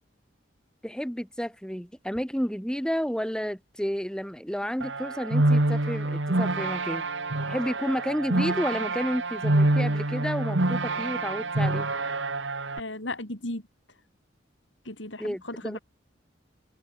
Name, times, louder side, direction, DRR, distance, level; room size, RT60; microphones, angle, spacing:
voice 1, 0.8-7.0 7.5-11.9 15.2-15.8, equal, 5° left, 2.8 m, -31 dB
sound 1, 4.8-12.8, right 2 dB, 80° right, 2.0 m, -26 dB
voice 2, 12.8-13.6 14.9-15.8, left 1 dB, 80° left, 7.4 m, -35 dB
head